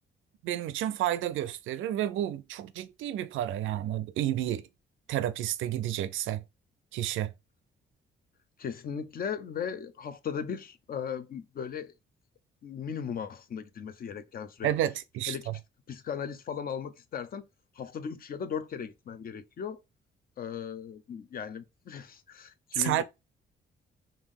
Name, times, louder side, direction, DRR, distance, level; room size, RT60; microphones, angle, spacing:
voice 1, 0.4-4.7 5.1-6.4 6.9-7.3 14.6-15.5 22.7-23.0, right 12 dB, 80° right, 0.4 m, -30 dB
voice 2, 8.6-11.9 12.6-14.7 15.3-15.5 15.9-17.4 17.7-19.8 20.4-23.0, left 7 dB, 45° left, 0.5 m, -37 dB
3.5 x 2.7 x 3.5 m
cardioid pair, 90°, 20 cm